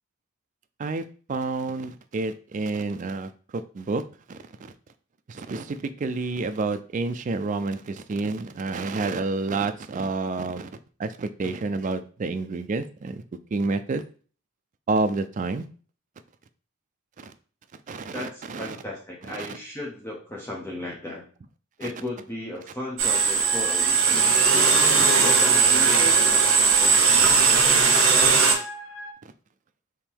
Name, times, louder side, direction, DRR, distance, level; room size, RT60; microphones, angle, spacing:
voice 1, 0.8-4.0 4.3-4.7 5.3-10.7 11.0-13.2 13.5-14.0 14.9-15.7 17.2-17.3 17.9-18.8 19.4-19.5 21.8-21.9 23.3-23.4 24.1-25.2, right 3 dB, 35° right, 10 dB, 0.3 m, -29 dB
voice 2, 18.1-21.2 21.8-26.3 27.1-27.2, left 1 dB, 10° left, -3 dB, 0.8 m, -35 dB
sound 1, 23.0-29.1, left 2 dB, 85° left, 0.5 m, -37 dB
sound 2, 23.0-28.5, right 5 dB, 75° right, 1.1 m, -19 dB
3.6 x 2.9 x 4.5 m, 0.40 s
head